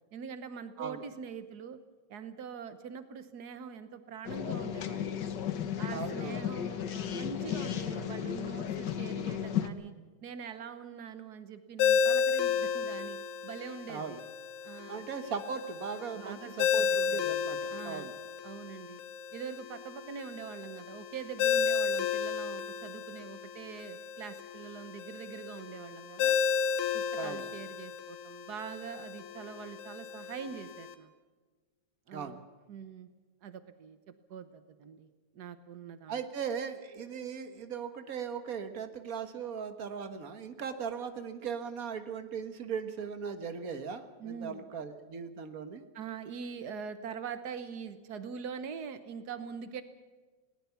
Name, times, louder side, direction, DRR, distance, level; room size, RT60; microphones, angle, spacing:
voice 1, 0.1-1.8 2.1-5.2 5.8-9.9 10.2-14.2 14.6-15.0 16.1-17.2 17.7-18.1 18.4-19.0 19.3-26.4 26.9-31.1 32.1-33.1 33.4-35.1 35.3-36.2 44.2-44.6 45.9-49.8, right 7 dB, 90° right, 11 dB, 0.8 m, -43 dB
sound 1, 4.2-9.7, left 9 dB, 60° left, 1.1 m, -34 dB
voice 2, 5.9-6.4 13.9-14.2 14.9-18.2 27.2-27.5 32.1-32.4 36.1-45.8, right 6 dB, 45° right, 9 dB, 1.2 m, -38 dB
Ringtone, 11.8-30.9, left 7 dB, 85° left, 2.6 m, -33 dB
20.5 x 18.5 x 7.2 m, 1.3 s
omnidirectional pair, 3.3 m